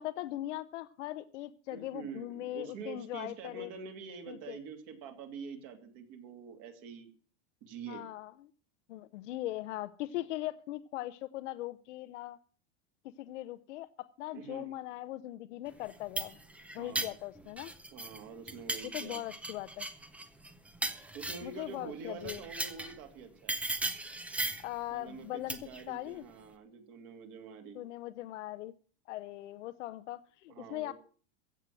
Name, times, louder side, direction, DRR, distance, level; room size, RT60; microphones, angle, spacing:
voice 1, 0.0-3.7 4.3-4.6 7.9-8.3 8.9-12.4 13.2-16.4 16.7-17.7 18.8-19.9 21.4-22.4 24.6-25.6 25.9-26.2 27.7-28.7 29.1-30.9, left 15 dB, 75° left, 11 dB, 0.9 m, -40 dB
voice 2, 1.7-7.1 7.6-8.0 14.3-14.7 16.8-17.1 17.9-19.2 21.1-23.6 24.9-27.8 30.5-30.9, right 6 dB, 45° right, 5 dB, 2.7 m, -46 dB
sound 1, 15.8-18.2 18.5-21.6 22.2-23.0 23.5-24.7 25.5-25.8, right 2 dB, 5° right, 0.6 m, -37 dB
15.5 x 7.7 x 7.5 m, 0.42 s
supercardioid pair, 170°, 36 cm